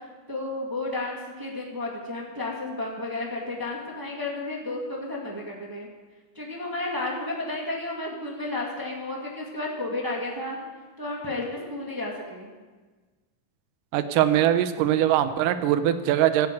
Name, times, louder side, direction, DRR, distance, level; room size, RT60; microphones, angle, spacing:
voice 1, 0.3-5.9 6.3-10.6 11.0-12.5, left 2 dB, 15° right, -2 dB, 0.8 m, -32 dB
voice 2, 13.9-16.5, right 11 dB, 80° right, 9 dB, 2.3 m, -22 dB
12.0 x 8.1 x 8.3 m, 1.3 s
omnidirectional pair, 3.8 m